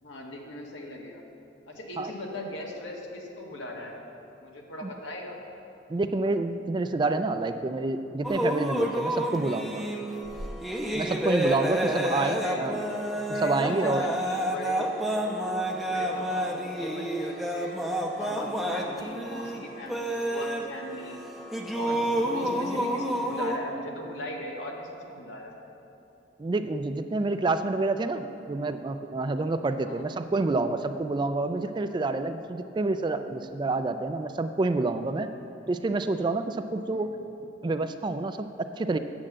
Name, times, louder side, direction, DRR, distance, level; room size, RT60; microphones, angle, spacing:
voice 1, 0.0-1.2 1.7-4.0 4.4-5.4 11.6-12.6 13.3-15.0 15.9-17.8 18.1-21.2 21.7-25.5 29.8-30.0 36.9-37.1, left 1 dB, 75° left, -1 dB, 1.6 m, -39 dB
voice 2, 5.9-9.8 10.9-12.8 13.3-14.1 26.4-35.3 35.7-37.1 37.6-39.0, right 3 dB, 25° right, 9 dB, 0.3 m, -28 dB
sound 1, 8.2-23.6, equal, ahead, 0.7 m, -29 dB
8.8 x 7.5 x 7.3 m, 2.9 s
head